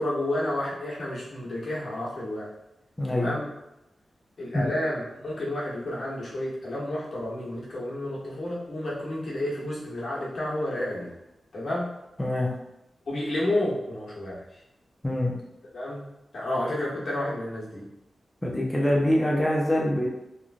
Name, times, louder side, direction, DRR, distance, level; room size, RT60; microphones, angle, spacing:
voice 1, 0.0-2.5 3.1-3.5 4.4-11.1 11.5-11.9 13.1-14.6 15.7-16.1 16.3-17.8, left 1 dB, 70° left, -6 dB, 1.0 m, -30 dB
voice 2, 3.0-3.3 4.5-4.6 12.2-12.5 15.0-15.3 18.4-20.1, left 1 dB, 10° left, -3 dB, 0.5 m, -24 dB
3.1 x 2.3 x 2.4 m, 0.91 s
wide cardioid pair, 85°, 0 cm